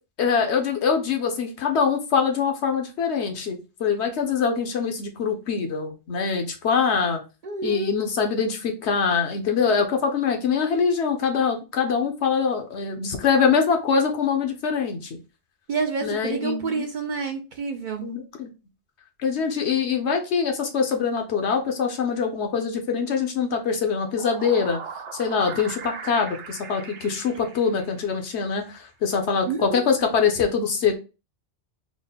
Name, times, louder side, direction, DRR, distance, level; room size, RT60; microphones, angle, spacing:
voice 1, 0.2-7.2 7.6-15.2 16.0-16.8 18.0-18.5 19.2-24.8 25.2-30.9, left 6 dB, 75° left, 4 dB, 1.0 m, -24 dB
voice 2, 7.4-8.1 15.7-18.2 29.5-29.8, right 5 dB, 60° right, 4 dB, 0.5 m, -29 dB
sound 1, 23.9-28.3, right 6 dB, 85° right, 1.0 m, -39 dB
3.7 x 2.1 x 3.9 m, 0.30 s
omnidirectional pair, 1.1 m